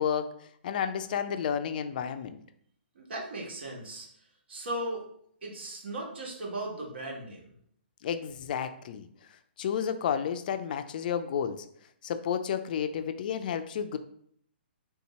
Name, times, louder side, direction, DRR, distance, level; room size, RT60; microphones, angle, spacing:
voice 1, 0.0-2.4 8.0-9.1 9.6-11.6 12.0-14.0, left 8 dB, 50° left, 9 dB, 0.4 m, -31 dB
voice 2, 2.9-4.1 4.5-5.0 5.4-7.5, right 1 dB, 70° right, -1 dB, 1.5 m, -37 dB
3.5 x 2.9 x 4.1 m, 0.66 s
hypercardioid pair, 145°, 6 cm